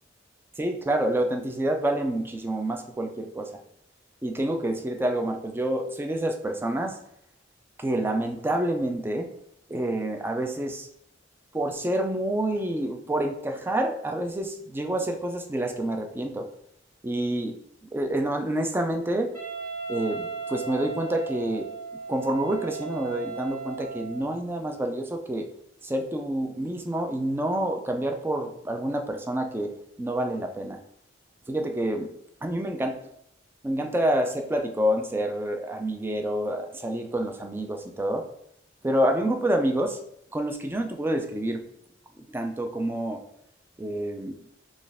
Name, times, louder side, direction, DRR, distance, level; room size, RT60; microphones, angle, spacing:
voice 1, 0.6-3.5 4.2-7.0 7.8-9.3 9.7-10.9 11.5-16.5 17.0-17.6 17.8-19.3 19.9-21.7 22.1-25.5 25.8-29.7 30.0-30.8 31.5-32.1 32.4-32.9 33.6-38.2 38.8-40.0 40.3-41.6 42.3-43.2 43.8-44.4, right 1 dB, 10° right, 5 dB, 0.3 m, -28 dB
Wind instrument woodwind instrument, 19.3-24.3, right 5 dB, 10° left, 1.5 m, -36 dB
4.2 x 2.4 x 3.4 m, 0.72 s
head